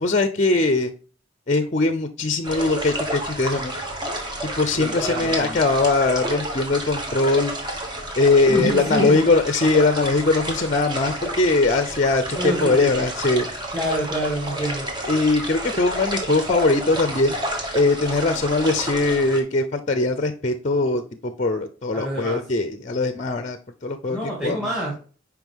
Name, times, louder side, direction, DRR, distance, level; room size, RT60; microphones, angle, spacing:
voice 1, 0.0-0.9 1.5-3.8 4.6-7.5 8.2-13.5 15.1-17.4 17.7-23.6 23.8-24.6, left 3 dB, 35° left, 10 dB, 0.6 m, -21 dB
sound 1, 2.4-19.4, right 1 dB, 25° right, 1.5 m, -30 dB
voice 2, 4.7-5.6 8.5-9.2 12.3-12.9 13.7-14.9 21.9-22.4 24.1-25.0, equal, 5° right, -4 dB, 2.6 m, -27 dB
9.6 x 4.8 x 3.6 m, 0.40 s
head